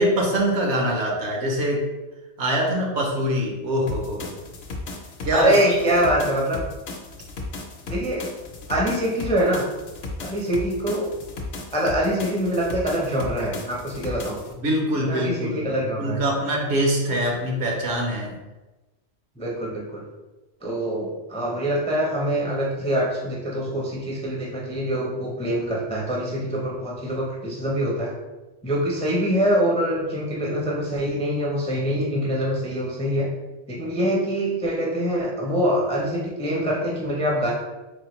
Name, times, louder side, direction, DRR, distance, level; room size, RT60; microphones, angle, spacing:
voice 1, 0.0-1.9 2.4-4.3 5.2-5.8 14.6-15.7 16.0-18.3, equal, 70° right, 0 dB, 1.1 m, -23 dB
sound 1, 3.9-14.5, left 3 dB, 65° left, 0.8 m, -35 dB
voice 2, 5.3-6.6 7.8-8.3 8.7-9.6 10.2-11.1 11.7-14.4 15.0-16.2 19.4-20.0 20.6-28.1 28.6-33.3 33.7-37.5, equal, 10° left, -3 dB, 0.4 m, -24 dB
3.6 x 3.4 x 3.0 m, 1.1 s
omnidirectional pair, 1.2 m